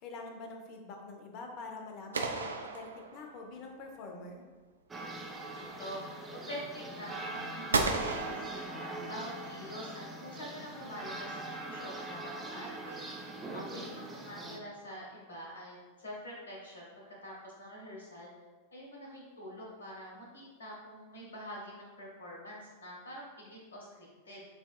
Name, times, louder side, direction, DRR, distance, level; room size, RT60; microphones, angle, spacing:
voice 1, 0.0-4.4 13.5-14.0, left 3 dB, 45° left, 3 dB, 0.6 m, -45 dB
sound 1, 2.1-3.6 7.7-9.3, right 3 dB, 75° right, 0.3 m, -34 dB
sound 2, 4.9-14.6, right 2 dB, 15° right, 0.6 m, -42 dB
voice 2, 5.5-13.0 13.5-18.3 18.7-24.5, equal, 70° left, -3 dB, 1.2 m, -46 dB
6.8 x 2.3 x 2.3 m, 1.3 s
figure-of-eight pair, 90°, 0 cm